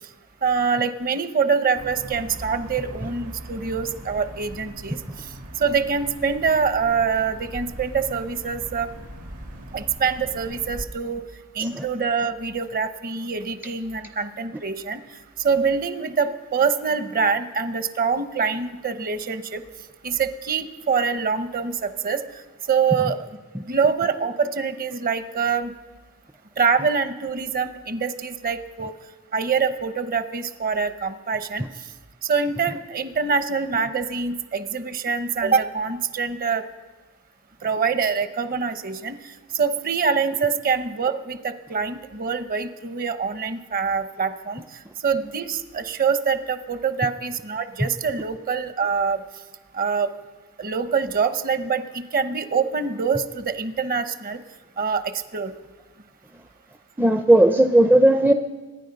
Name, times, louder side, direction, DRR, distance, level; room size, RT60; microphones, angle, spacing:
voice 1, 0.4-5.0 5.6-8.9 9.7-11.2 11.6-15.0 15.4-19.6 20.0-22.2 22.7-23.3 23.7-25.7 26.6-28.9 29.3-31.6 32.2-36.6 37.6-39.2 39.5-44.6 45.0-49.2 49.7-50.1 50.6-54.4 54.8-55.5, right 5 dB, 40° right, 11 dB, 0.8 m, -25 dB
sound 1, 1.8-10.8, right 1 dB, 80° right, 2.4 m, -40 dB
voice 2, 57.0-58.3, right 1 dB, 10° right, 7 dB, 0.4 m, -16 dB
24.5 x 10.0 x 5.3 m, 1.3 s
head